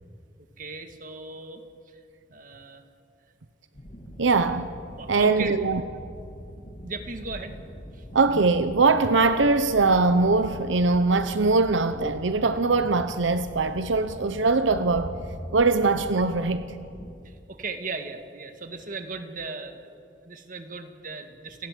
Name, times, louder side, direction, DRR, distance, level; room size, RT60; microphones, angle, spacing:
voice 1, 0.6-2.0 2.3-2.8 5.0-5.5 6.8-7.5 7.9-8.0 17.2-21.7, right 3 dB, 45° right, 7 dB, 1.9 m, -37 dB
sound 1, 3.7-17.2, equal, 40° left, 3.1 m, -41 dB
voice 2, 4.2-4.7 5.1-5.8 8.1-15.1 15.5-16.7, right 3 dB, 85° right, 10 dB, 0.8 m, -22 dB
29.5 x 19.5 x 7.6 m, 2.5 s
head